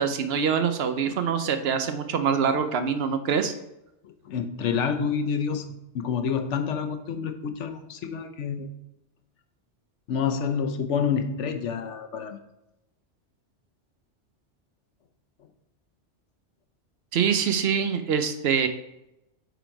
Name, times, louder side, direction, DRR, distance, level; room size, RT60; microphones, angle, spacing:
voice 1, 0.0-3.5 17.1-18.7, right 7 dB, 65° right, 9 dB, 0.9 m, -24 dB
voice 2, 4.0-5.7 5.9-8.7 10.1-12.4, left 6 dB, 80° left, 8 dB, 1.0 m, -28 dB
8.1 x 4.1 x 4.6 m, 0.88 s
omnidirectional pair, 1.2 m